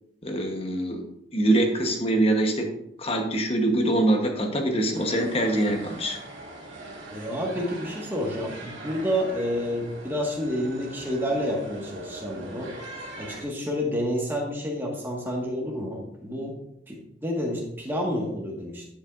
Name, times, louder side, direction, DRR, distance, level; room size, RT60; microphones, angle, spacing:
voice 1, 0.2-1.0 1.3-2.7 3.0-6.2, right 1 dB, 30° left, 4 dB, 1.0 m, -24 dB
sound 1, 4.9-13.4, right 2 dB, 80° right, 2.2 m, -41 dB
voice 2, 7.1-12.7 13.2-16.5 16.9-18.9, equal, 10° right, -2 dB, 1.6 m, -29 dB
11.0 x 7.2 x 2.5 m, 0.82 s
head